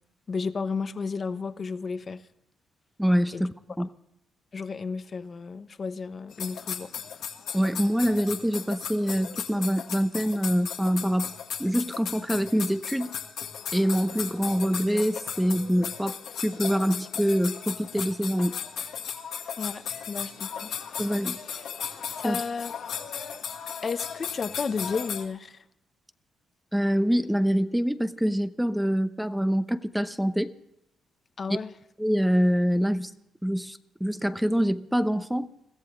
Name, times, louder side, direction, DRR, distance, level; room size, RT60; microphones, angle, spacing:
voice 1, 0.3-2.2 3.3-3.4 4.5-6.9 19.6-20.7 22.2-22.7 23.8-25.6 31.4-31.7, left 5 dB, 40° left, 12 dB, 0.9 m, -32 dB
voice 2, 3.0-3.9 7.5-13.2 13.7-18.6 21.0-21.4 22.2-22.4 26.7-30.5 31.5-31.6 32.0-33.1 33.4-35.5, equal, 5° right, 11 dB, 0.8 m, -25 dB
sound 1, 6.3-25.2, left 8 dB, 75° left, 1.7 m, -36 dB
22.0 x 14.5 x 3.8 m, 0.81 s
cardioid pair, 90°, 0 cm